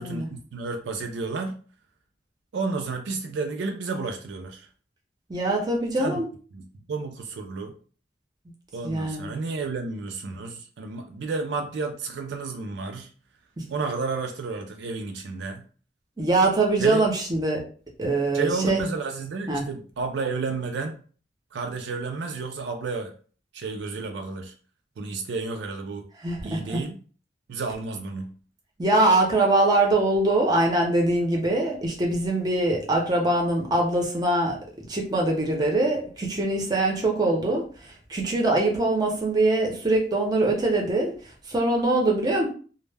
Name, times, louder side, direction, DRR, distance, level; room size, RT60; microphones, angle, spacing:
voice 1, 0.0-1.6 2.5-4.7 6.0-6.2 6.5-7.7 8.7-13.1 13.7-15.6 16.8-17.0 18.3-21.0 21.5-23.1 23.5-24.5 25.0-26.1 26.4-27.0 27.5-28.3, right 4 dB, 75° right, 4 dB, 0.4 m, -31 dB
voice 2, 5.3-6.3 8.8-9.3 16.2-17.6 18.0-18.8 19.5-19.6 26.2-26.8 28.8-34.6 34.9-37.7 38.1-41.1 41.5-42.5, right 2 dB, 25° right, -1 dB, 0.6 m, -23 dB
2.1 x 2.0 x 3.3 m, 0.41 s
head